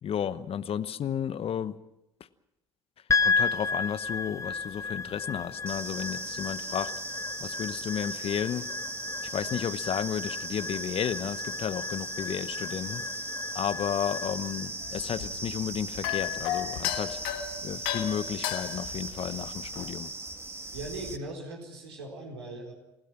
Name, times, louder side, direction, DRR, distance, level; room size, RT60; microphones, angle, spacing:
voice 1, 0.0-1.8 3.2-6.9 7.4-8.7 9.3-13.0 13.5-17.2 17.6-20.1, left 9 dB, 45° left, 15 dB, 1.0 m, -32 dB
sound 1, 3.1-17.5, left 4 dB, 20° left, 1.1 m, -34 dB
sound 2, 5.7-21.2, right 2 dB, 20° right, 2.2 m, -38 dB
sound 3, 14.8-19.9, left 11 dB, 70° left, 1.6 m, -34 dB
voice 2, 20.7-22.7, right 2 dB, 80° right, 0 dB, 4.4 m, -39 dB
29.5 x 17.0 x 6.0 m, 0.91 s
figure-of-eight pair, 50°, 14 cm